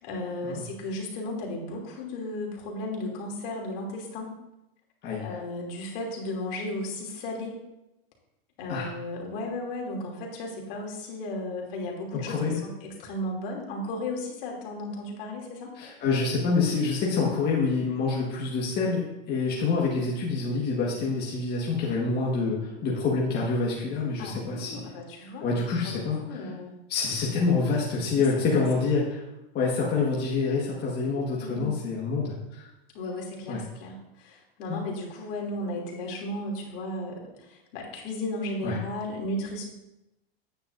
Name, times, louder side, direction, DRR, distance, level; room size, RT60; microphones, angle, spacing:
voice 1, 0.0-4.3 5.2-7.6 8.6-15.7 24.2-26.7 28.2-28.5 28.7-28.9 31.4-31.8 32.9-39.6, left 1 dB, 60° left, -1 dB, 2.9 m, -35 dB
voice 2, 5.0-5.4 8.7-8.9 12.3-12.6 15.8-24.8 25.4-26.4 26.9-29.2 29.5-32.6 33.5-33.6 34.7-34.8 38.6-38.8, left 4 dB, 30° left, -3 dB, 1.6 m, -27 dB
9.7 x 9.3 x 2.6 m, 0.93 s
supercardioid pair, 135°, 31 cm